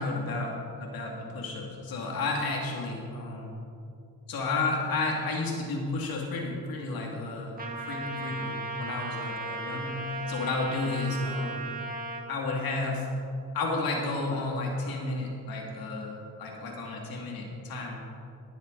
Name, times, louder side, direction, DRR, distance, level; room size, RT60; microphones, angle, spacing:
voice 1, 0.0-3.5 4.3-7.5 7.9-10.0 10.3-11.6 12.3-13.1 13.5-18.0, left 3 dB, 80° left, -1 dB, 2.4 m, -32 dB
Trumpet, 7.6-12.2, right 2 dB, 25° right, 1.7 m, -36 dB
19.0 x 7.3 x 3.9 m, 2.5 s
cardioid pair, 95°, 35 cm